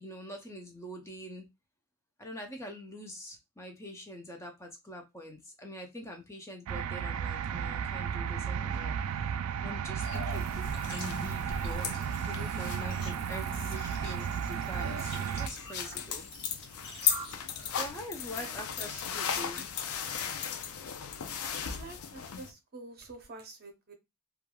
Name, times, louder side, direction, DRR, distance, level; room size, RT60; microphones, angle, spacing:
voice 1, 0.0-1.5 2.2-9.3 9.6-11.9 12.2-16.3 17.8-19.7, equal, 15° left, 3 dB, 0.5 m, -44 dB
sound 1, 6.7-15.5, right 7 dB, 80° right, 0.3 m, -34 dB
sound 2, 10.0-17.9, left 1 dB, 55° left, 1.0 m, -45 dB
sound 3, 10.3-22.5, left 8 dB, 70° left, 0.4 m, -37 dB
voice 2, 18.2-18.5 21.4-23.9, right 3 dB, 45° right, 5 dB, 0.7 m, -48 dB
3.2 x 2.3 x 2.2 m, 0.22 s
head